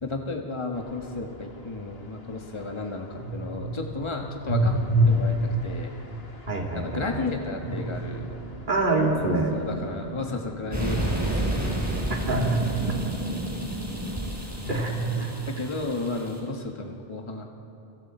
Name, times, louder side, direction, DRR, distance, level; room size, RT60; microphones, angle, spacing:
voice 1, 0.0-4.7 5.1-5.9 6.7-8.5 9.1-11.8 13.5-13.8 14.5-14.7 15.1-17.5, left 3 dB, 30° left, 2 dB, 1.5 m, -33 dB
sound 1, 0.7-11.0 12.3-14.2 14.6-16.2, right 1 dB, 70° left, 2.0 m, -30 dB
voice 2, 6.5-7.3 8.7-9.5 12.3-12.6 14.7-15.3, right 2 dB, 50° right, -1 dB, 2.8 m, -26 dB
sound 2, 7.2-12.3, equal, 85° right, 7.7 m, -47 dB
sound 3, 10.7-16.4, right 1 dB, 15° right, 5.7 m, -30 dB
30.0 x 24.5 x 4.4 m, 2.8 s
omnidirectional pair, 1.1 m